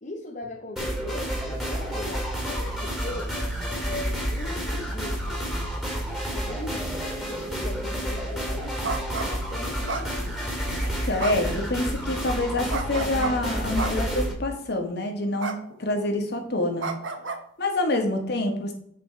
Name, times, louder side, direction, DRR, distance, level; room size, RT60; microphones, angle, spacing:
voice 1, 0.0-3.4 3.9-5.6 6.3-6.9 7.2-10.4, left 2 dB, 45° left, -1 dB, 1.1 m, -39 dB
sound 1, 0.8-14.3, equal, ahead, 2.4 m, -30 dB
sound 2, 8.8-9.3 9.9-10.5 11.2-11.6 12.7-13.3 13.8-14.2 15.4-15.6 15.9-16.2 16.8-17.4, right 3 dB, 85° right, 1.0 m, -31 dB
voice 2, 10.8-16.9 17.6-18.7, left 1 dB, 60° left, 4 dB, 1.7 m, -27 dB
8.7 x 5.1 x 4.6 m, 0.67 s
head